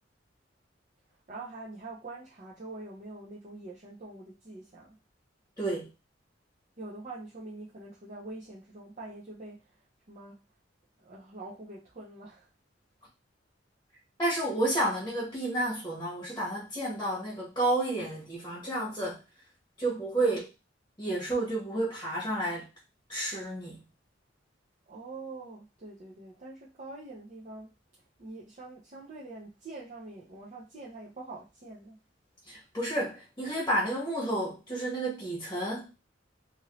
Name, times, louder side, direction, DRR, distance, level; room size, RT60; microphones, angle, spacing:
voice 1, 1.3-5.0 6.8-9.7 10.1-10.4 11.0-12.5 24.9-27.7 28.2-32.0, right 2 dB, 40° right, -6 dB, 0.7 m, -44 dB
voice 2, 5.6-5.9 14.2-19.2 19.8-20.5 21.0-22.7 23.1-23.8 32.5-35.9, right 1 dB, 15° left, -5 dB, 1.1 m, -31 dB
2.8 x 2.6 x 3.0 m, 0.28 s
head